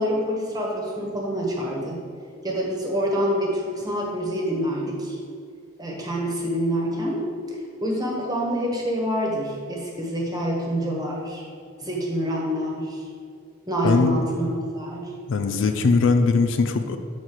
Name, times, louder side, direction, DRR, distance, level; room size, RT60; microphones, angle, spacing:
voice 1, 0.0-2.0 2.4-5.2 5.8-11.4 11.8-13.0 13.7-15.1, equal, 20° right, -2 dB, 1.2 m, -26 dB
voice 2, 13.8-14.2 15.3-17.0, left 4 dB, 65° left, 8 dB, 0.4 m, -20 dB
6.4 x 4.1 x 6.1 m, 2.3 s
head